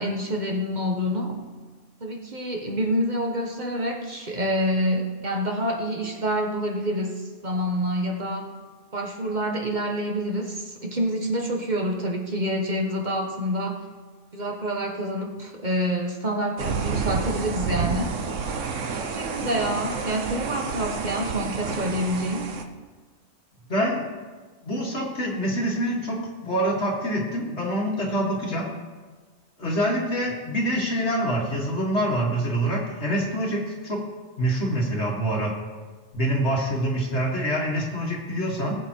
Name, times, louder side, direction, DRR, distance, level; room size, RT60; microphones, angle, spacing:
voice 1, 0.0-1.4 2.0-8.5 8.9-13.8 14.3-18.2 19.0-22.5, equal, 40° right, 1 dB, 1.6 m, -27 dB
sound 1, 16.6-22.6, right 5 dB, 90° right, 1.3 m, -29 dB
voice 2, 23.7-24.1 24.6-26.2 26.4-28.7 29.6-34.0 34.4-35.5 36.1-38.8, right 1 dB, 65° left, -2 dB, 2.2 m, -25 dB
19.5 x 7.9 x 4.6 m, 1.4 s
omnidirectional pair, 1.2 m